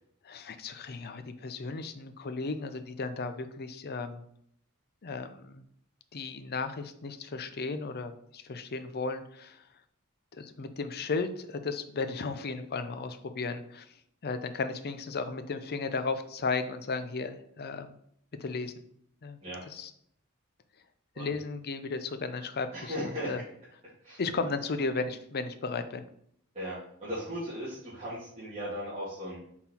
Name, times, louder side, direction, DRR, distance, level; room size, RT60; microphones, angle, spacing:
voice 1, 0.2-4.2 5.0-5.7 6.1-9.6 10.3-13.9 14.2-18.0 18.4-18.8 19.2-19.4 19.7-19.9 21.2-23.4 24.2-26.0, left 4 dB, 45° left, 10 dB, 0.5 m, -35 dB
voice 2, 22.7-23.3 24.0-24.2 26.5-29.4, equal, 30° right, -12 dB, 2.2 m, -37 dB
5.6 x 4.3 x 4.3 m, 0.68 s
head